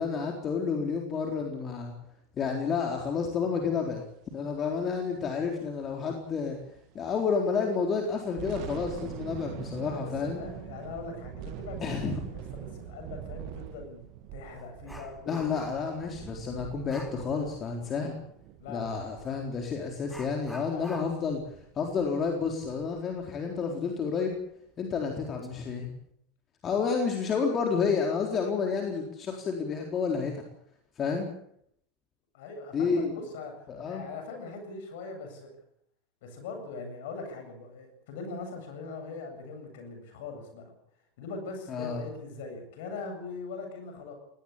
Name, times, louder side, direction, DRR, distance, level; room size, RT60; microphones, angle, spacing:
voice 1, 0.0-1.9 2.4-4.0 4.3-6.6 6.9-10.4 11.8-12.2 15.3-18.2 18.7-21.4 21.8-24.4 24.8-25.9 26.6-30.4 31.0-31.3 32.7-33.1 33.7-34.0 41.7-42.0, left 5 dB, 30° left, 2 dB, 4.0 m, -30 dB
sound 1, 4.3-7.1 7.4-7.6 8.1-22.9, right 11 dB, 50° right, 2.1 m, -44 dB
voice 2, 9.8-14.0 14.3-15.6 18.6-18.9 19.3-19.4 20.6-21.0 32.3-35.6 36.2-40.7 41.2-44.1, left 4 dB, 55° left, 6 dB, 8.0 m, -41 dB
Dog, 13.5-13.7 14.1-16.0 16.9-17.2 19.2-19.4 20.1-23.4 23.7-23.8 24.3-24.4 25.1-25.5 25.8-26.1, left 1 dB, 5° left, 3.8 m, -48 dB
20.5 x 18.5 x 8.7 m, 0.71 s
figure-of-eight pair, 80°, 0 cm